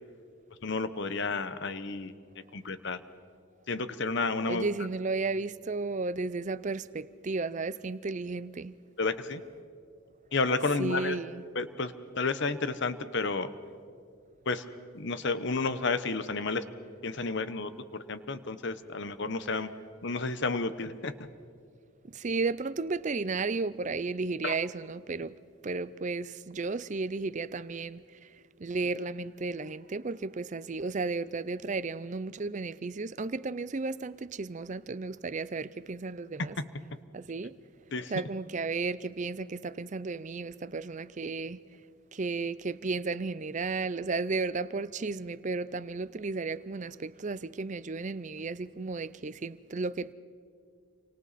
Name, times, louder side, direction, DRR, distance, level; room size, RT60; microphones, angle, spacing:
voice 1, 0.6-2.1 2.5-3.0 3.7-4.7 9.0-9.4 10.3-11.2 11.5-13.5 14.5-14.6 14.9-16.6 17.0-17.7 18.1-19.7 20.0-21.1 24.4-24.5 36.4-36.5 37.9-38.1, left 3 dB, 55° left, 0.9 m, -31 dB
voice 2, 4.5-8.8 10.8-11.4 22.1-25.4 25.6-36.6 37.1-37.6 38.1-41.6 42.1-50.1, right 3 dB, 35° right, 0.5 m, -34 dB
29.5 x 24.5 x 4.2 m
head